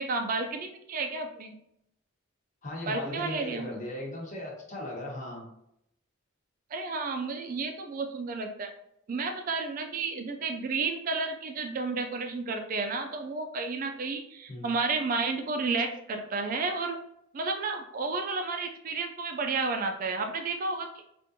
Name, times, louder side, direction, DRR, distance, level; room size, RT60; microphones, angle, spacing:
voice 1, 0.0-1.5 2.9-3.7 6.7-8.7 9.1-17.0 17.3-20.9, right 4 dB, 40° right, 5 dB, 0.3 m, -31 dB
voice 2, 2.6-5.4 14.5-14.7, left 1 dB, 35° left, -3 dB, 1.0 m, -37 dB
3.6 x 2.5 x 2.6 m, 0.76 s
head